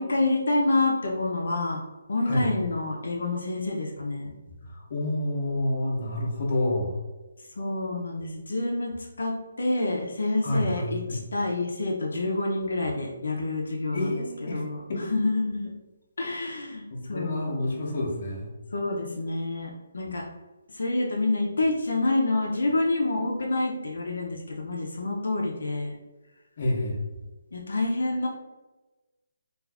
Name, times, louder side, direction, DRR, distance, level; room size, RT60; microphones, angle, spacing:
voice 1, 0.0-1.8 2.1-4.3 7.6-8.9 9.2-14.2 14.5-14.8 15.1-15.7 16.2-16.8 17.1-17.5 18.7-20.2 20.7-25.9 27.5-28.3, left 2 dB, 80° left, -1 dB, 0.5 m, -27 dB
voice 2, 4.6-6.9 10.4-11.2 13.9-14.6 16.9-18.5 26.6-27.1, left 1 dB, 40° left, -3 dB, 0.7 m, -28 dB
2.4 x 2.4 x 3.3 m, 1.2 s
hypercardioid pair, 170°, 0 cm